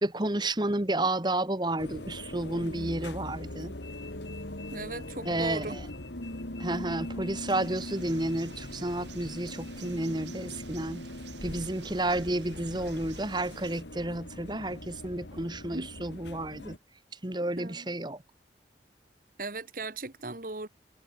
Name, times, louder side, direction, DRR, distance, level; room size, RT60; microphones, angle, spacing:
voice 1, 0.0-3.7 5.2-5.8 6.6-11.0 11.4-16.7 17.2-18.2, right 1 dB, 25° right, 1.6 m, -31 dB
sound 1, 1.8-16.8, left 1 dB, 80° left, 3.3 m, -41 dB
voice 2, 4.7-5.8 15.7-15.9 17.6-17.9 19.4-20.7, right 3 dB, 50° right, 1.7 m, -38 dB
sound 2, 7.5-13.8, right 6 dB, 80° right, 6.8 m, -51 dB
head